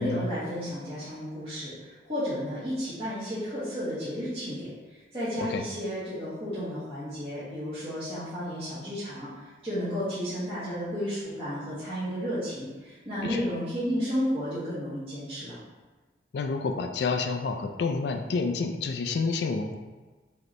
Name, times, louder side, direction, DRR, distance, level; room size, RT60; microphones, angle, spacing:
voice 1, 0.0-15.6, equal, 30° right, -14 dB, 1.4 m, -32 dB
voice 2, 16.3-19.8, left 4 dB, 65° left, 6 dB, 0.3 m, -29 dB
5.1 x 2.9 x 3.1 m, 1.3 s
head